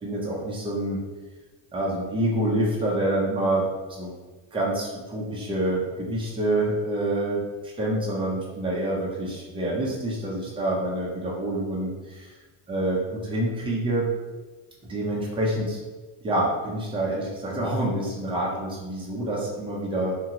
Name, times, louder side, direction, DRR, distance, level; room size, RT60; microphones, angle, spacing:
voice 1, 0.0-1.0 1.7-4.1 4.5-7.4 7.8-12.3 12.7-14.1 14.9-15.8 16.2-20.2, right 1 dB, 15° right, -4 dB, 0.3 m, -27 dB
2.9 x 2.5 x 2.7 m, 1.2 s
cardioid pair, 165°, 48 cm